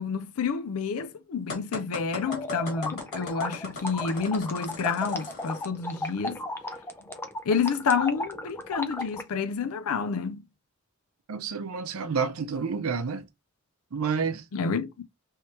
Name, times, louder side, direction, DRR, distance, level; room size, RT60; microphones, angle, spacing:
voice 1, 0.0-6.4 7.5-10.4 14.5-15.0, left 5 dB, 85° left, 0.5 m, -29 dB
sound 1, 1.5-5.7, left 3 dB, 50° left, 1.7 m, -39 dB
sound 2, 2.2-9.2, left 2 dB, 10° left, 0.4 m, -35 dB
voice 2, 11.3-13.3 13.9-14.4, right 5 dB, 75° right, 0.5 m, -29 dB
3.2 x 3.2 x 2.8 m
head